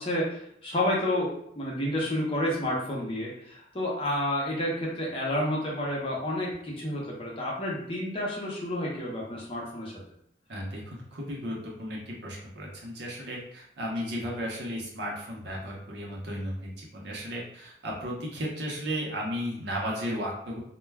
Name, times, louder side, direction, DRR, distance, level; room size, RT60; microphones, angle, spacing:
voice 1, 0.0-10.0, left 1 dB, 30° left, -4 dB, 0.7 m, -30 dB
voice 2, 10.5-20.6, equal, 70° right, -2 dB, 0.7 m, -34 dB
2.2 x 2.2 x 3.3 m, 0.72 s
head